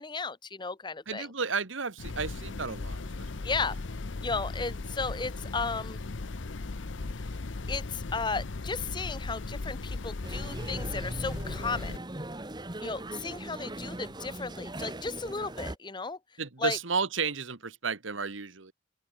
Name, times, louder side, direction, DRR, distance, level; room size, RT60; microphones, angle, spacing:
voice 1, 0.0-1.3 3.4-3.8 4.2-6.0 7.7-11.9 12.8-16.2 16.6-16.8, left 4 dB, 25° left, 0.9 m, -34 dB
voice 2, 1.1-3.0 16.4-18.7, right 5 dB, 80° right, 1.7 m, -32 dB
sound 1, 2.0-12.0, left 3 dB, 75° left, 0.8 m, -37 dB
sound 2, 10.2-15.8, right 1 dB, 20° right, 1.4 m, -39 dB
open air
head